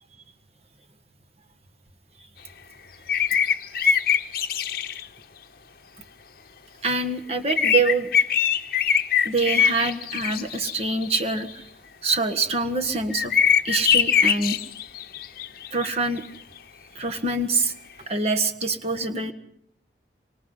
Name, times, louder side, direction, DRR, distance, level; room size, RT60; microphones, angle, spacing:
sound 1, 3.1-5.1 7.5-11.4 13.1-15.9 16.2-16.3, left 8 dB, 55° left, 0.9 m, -22 dB
voice 1, 6.8-8.1 9.2-11.6 12.0-13.3 13.6-14.6 15.7-16.2 16.9-17.7 18.1-19.3, right 3 dB, 35° right, 6 dB, 1.6 m, -25 dB
28.0 x 25.0 x 5.7 m, 0.70 s
head